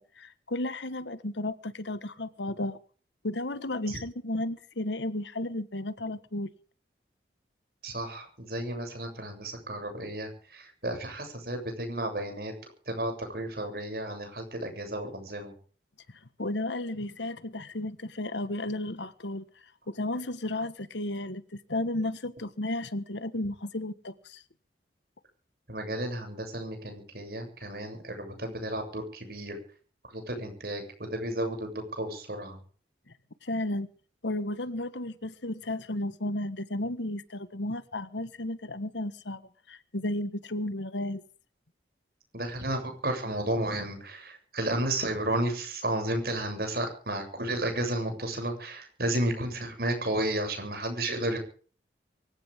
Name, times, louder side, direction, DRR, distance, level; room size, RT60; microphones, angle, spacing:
voice 1, 0.2-2.8 3.2-6.5 16.4-19.4 19.9-24.4 33.4-33.9 34.2-39.4 39.7-41.2, left 1 dB, 80° left, 1.5 m, -33 dB
voice 2, 7.8-12.5 12.9-15.5 25.7-29.6 30.0-32.6 42.3-51.4, right 1 dB, 55° right, 7.5 m, -32 dB
24.5 x 16.0 x 3.7 m
head